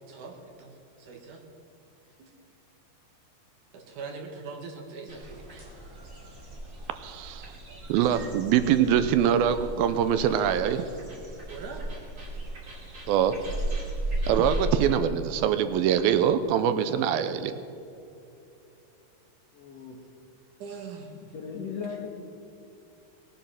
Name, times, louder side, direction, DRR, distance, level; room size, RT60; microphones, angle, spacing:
voice 1, 0.1-1.4 2.2-2.3 3.7-5.7 11.5-11.9 20.6-21.2, right 4 dB, 60° right, 3 dB, 2.8 m, -42 dB
sound 1, 5.1-14.9, right 1 dB, 25° right, 2.2 m, -36 dB
voice 2, 7.0-7.5 7.9-10.8 13.1-13.4 14.3-17.5, right 9 dB, 85° right, 11 dB, 2.4 m, -24 dB
voice 3, 19.5-20.0 21.2-22.3, left 6 dB, 60° left, 0 dB, 1.8 m, -37 dB
19.5 x 10.5 x 5.7 m, 2.8 s
omnidirectional pair, 4.4 m